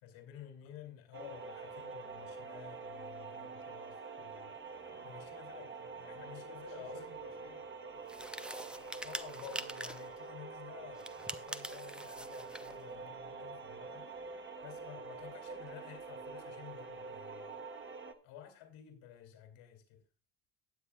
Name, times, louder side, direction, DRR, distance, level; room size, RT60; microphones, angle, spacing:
voice 1, 0.0-4.5 5.0-7.0 9.0-14.1 14.6-17.6 18.2-20.0, left 10 dB, 70° left, 2.7 m, -52 dB
voice 2, 0.6-1.0 4.9-5.2 6.7-9.1, left 7 dB, 85° left, 3.9 m, -60 dB
sound 1, 1.1-18.1, right 4 dB, 25° right, 1.3 m, -46 dB
sound 2, 8.1-10.1 11.0-12.8, right 1 dB, ahead, 0.5 m, -44 dB
18.5 x 7.3 x 2.3 m
supercardioid pair, 80°, 48 cm